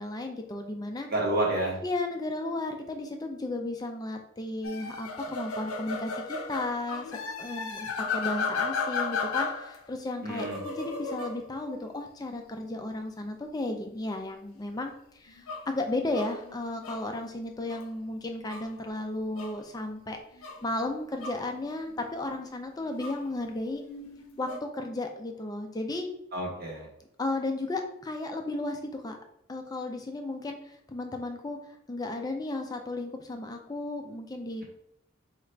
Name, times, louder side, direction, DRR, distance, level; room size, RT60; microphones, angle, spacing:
voice 1, 0.0-1.1 1.8-20.2 20.6-23.8 24.4-26.1 27.2-29.2 29.5-31.6 31.9-34.6, left 2 dB, 15° left, 4 dB, 0.4 m, -34 dB
voice 2, 1.1-1.8 10.2-10.6 26.3-26.9, right 1 dB, 45° right, -2 dB, 1.1 m, -29 dB
sound 1, 4.6-9.8 10.1-12.3 15.3-17.1 17.7-17.8 18.5-18.7 19.3-19.6 20.3-20.6 20.9-22.4 22.9-23.2 23.8-24.6, left 4 dB, 80° left, 0.6 m, -35 dB
4.9 x 2.4 x 3.2 m, 0.76 s
head